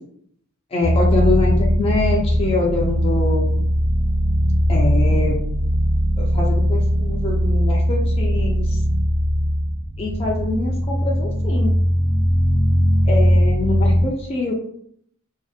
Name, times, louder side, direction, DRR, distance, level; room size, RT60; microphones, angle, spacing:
voice 1, 0.7-3.6 4.7-5.4 6.2-8.8 10.0-11.7 13.1-14.5, left 2 dB, 25° left, -3 dB, 0.4 m, -24 dB
sound 1, 0.8-14.0, equal, 75° left, 0.6 m, -19 dB
2.6 x 2.1 x 2.3 m, 0.65 s
head